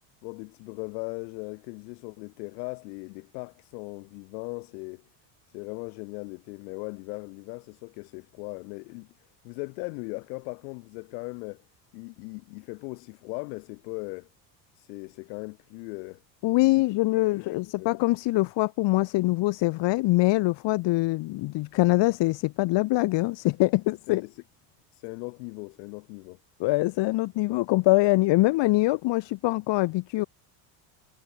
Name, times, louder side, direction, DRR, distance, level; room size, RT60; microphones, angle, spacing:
voice 1, 0.2-5.0 5.5-9.1 9.4-11.6 11.9-14.3 14.7-16.2 16.8-16.9 17.2-17.9 24.1-24.4 24.9-26.4, left 34 dB, 75° left, 5.4 m, -38 dB
voice 2, 16.4-24.2 26.6-30.2, left 20 dB, 55° left, 1.8 m, -24 dB
supercardioid pair, 105°, 50 cm